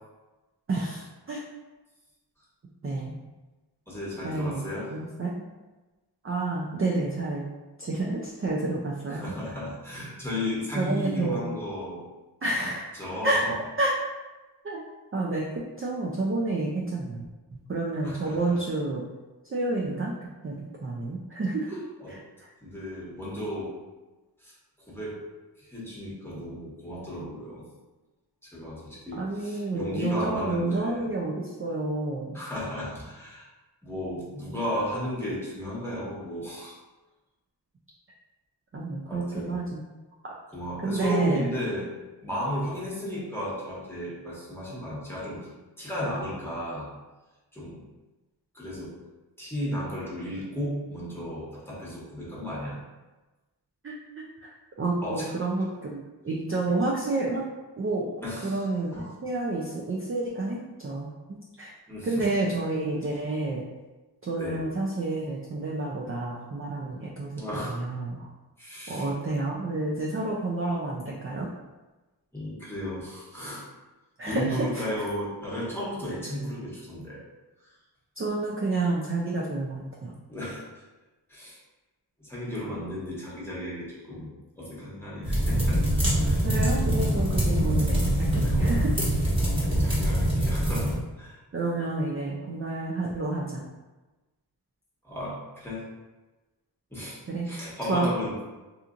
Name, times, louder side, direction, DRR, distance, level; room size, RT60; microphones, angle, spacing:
voice 1, 0.7-1.4 2.8-3.1 4.2-5.4 6.2-7.4 7.8-9.3 10.8-11.4 12.4-12.9 13.2-13.4 13.8-13.9 14.6-14.8 15.1-17.3 17.5-19.0 19.5-20.1 20.4-21.8 22.1-22.2 29.1-32.4 38.7-39.9 40.2-40.3 40.8-41.5 53.8-54.5 54.8-57.4 57.8-58.1 58.4-61.7 62.0-63.6 64.2-67.3 67.6-68.3 68.9-71.5 74.2-74.8 78.2-80.1 86.4-88.9 91.5-93.6 97.3-97.5 97.9-98.1, right 2 dB, 30° right, -4 dB, 0.4 m, -29 dB
voice 2, 3.9-4.9 9.1-12.0 12.6-13.5 18.0-18.6 22.0-22.2 22.6-23.8 24.4-25.2 25.6-27.6 28.4-31.1 32.3-33.5 33.8-36.8 39.1-39.6 40.5-41.9 42.2-45.5 45.8-46.9 47.5-47.8 48.5-48.9 49.4-52.8 55.0-55.3 56.7-56.8 58.2-58.6 58.9-59.1 61.9-62.3 64.4-64.6 67.4-67.8 68.6-69.1 72.3-73.6 74.2-77.2 77.6-77.7 80.3-80.6 81.3-81.6 82.2-85.9 86.2-86.5 88.0-88.2 88.4-88.7 89.6-91.4 95.0-95.8 96.9-98.4, left 1 dB, 5° left, -7 dB, 1.1 m, -34 dB
sound 1, 85.2-91.0, right 1 dB, 10° right, 1.2 m, -24 dB
2.8 x 2.4 x 2.5 m, 1.1 s
wide cardioid pair, 50°, 43 cm